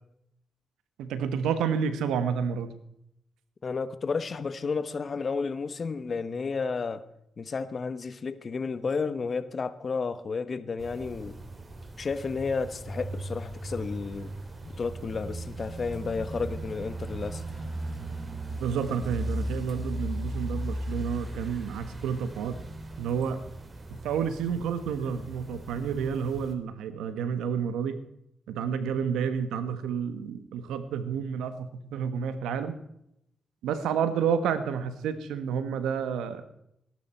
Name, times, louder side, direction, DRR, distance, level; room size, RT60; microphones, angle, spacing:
voice 1, 1.0-2.7 18.6-22.6 23.0-23.4 24.0-28.0 28.5-32.7 33.6-36.4, right 7 dB, 90° right, 1.4 m, -30 dB
voice 2, 3.6-7.0 7.4-11.4 12.0-14.3 14.6-17.4, left 4 dB, 50° left, 1.2 m, -32 dB
sound 1, 10.8-26.5, right 1 dB, 35° right, 2.7 m, -37 dB
18.0 x 12.0 x 4.4 m
supercardioid pair, 55°, 0 cm